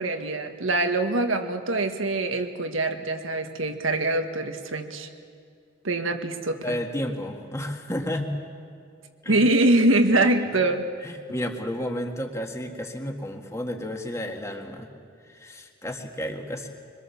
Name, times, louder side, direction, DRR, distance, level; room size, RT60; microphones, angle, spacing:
voice 1, 0.0-5.1 5.8-6.8 9.3-10.9, right 2 dB, 85° right, 6 dB, 1.6 m, -24 dB
voice 2, 6.6-8.3 9.2-9.4 10.1-10.4 11.0-14.9 15.3-16.7, left 1 dB, 15° left, 3 dB, 1.7 m, -32 dB
24.5 x 22.0 x 7.1 m, 2.3 s
head